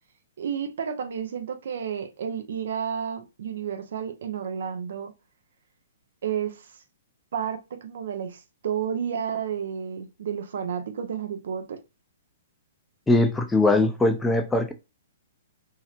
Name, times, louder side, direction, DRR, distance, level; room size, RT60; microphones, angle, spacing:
voice 1, 0.4-5.1 6.2-6.8 7.3-11.8, right 8 dB, 70° right, 0.6 m, -31 dB
voice 2, 13.1-14.7, left 2 dB, 5° left, 0.5 m, -21 dB
3.2 x 2.8 x 2.4 m
hypercardioid pair, 135°, 0 cm